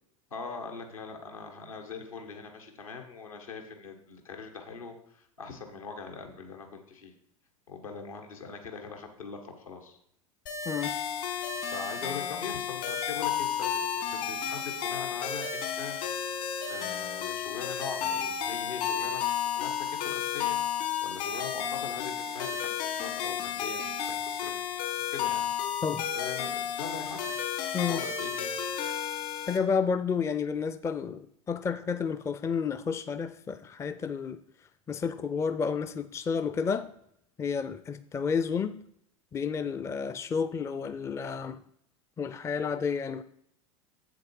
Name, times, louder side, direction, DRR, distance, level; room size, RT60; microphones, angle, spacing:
voice 1, 0.3-7.1 7.7-10.0 11.6-16.0 16.7-20.6 21.0-24.5 24.8-25.5 26.1-27.3 27.9-28.6, left 5 dB, 80° left, 4 dB, 1.8 m, -42 dB
sound 1, 10.5-29.6, left 8 dB, 50° left, 1.5 m, -32 dB
voice 2, 29.5-34.4 34.9-36.9 37.4-38.8 39.3-41.6 42.2-43.2, left 6 dB, 15° left, 12 dB, 0.4 m, -31 dB
7.6 x 7.2 x 4.8 m, 0.69 s
figure-of-eight pair, 85°, 18 cm